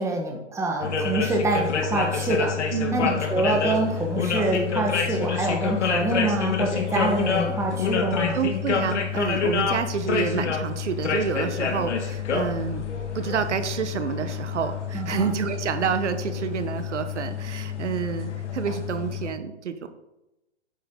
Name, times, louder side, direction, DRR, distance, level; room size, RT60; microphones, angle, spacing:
voice 1, 0.0-2.5 2.9-8.4 14.9-15.3, right 2 dB, 10° right, 1 dB, 1.3 m, -26 dB
sound 1, 0.8-19.3, left 6 dB, 80° left, 1.7 m, -28 dB
voice 2, 2.7-3.2 8.3-12.8 13.1-19.9, right 7 dB, 80° right, 9 dB, 1.1 m, -28 dB
8.9 x 7.1 x 3.8 m, 0.94 s
hypercardioid pair, 135°, 35 cm